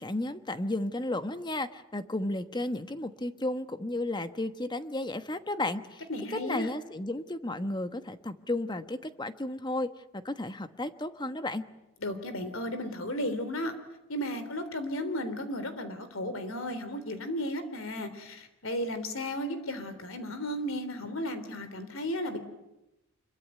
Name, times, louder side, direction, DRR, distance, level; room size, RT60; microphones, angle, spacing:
voice 1, 0.0-6.0 6.3-9.9 10.2-11.6, left 2 dB, 20° left, 10 dB, 1.2 m, -33 dB
voice 2, 6.1-6.7 12.0-13.7 14.1-22.4, left 1 dB, 70° left, 11 dB, 3.4 m, -34 dB
26.0 x 23.0 x 9.3 m, 0.94 s
head